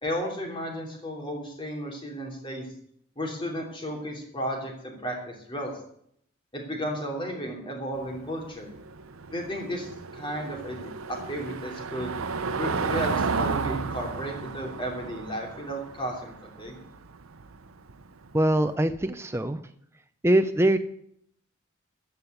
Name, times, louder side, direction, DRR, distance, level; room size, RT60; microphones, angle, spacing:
voice 1, 0.0-2.7 3.2-5.8 6.5-8.7 9.3-12.1 12.5-16.8, equal, 25° left, 1 dB, 3.0 m, -34 dB
Car passing by / Engine, 7.9-18.6, right 4 dB, 80° right, 0.8 m, -33 dB
voice 2, 18.3-19.6 20.2-20.8, right 1 dB, 10° right, 8 dB, 0.5 m, -23 dB
14.0 x 5.4 x 9.2 m, 0.69 s
head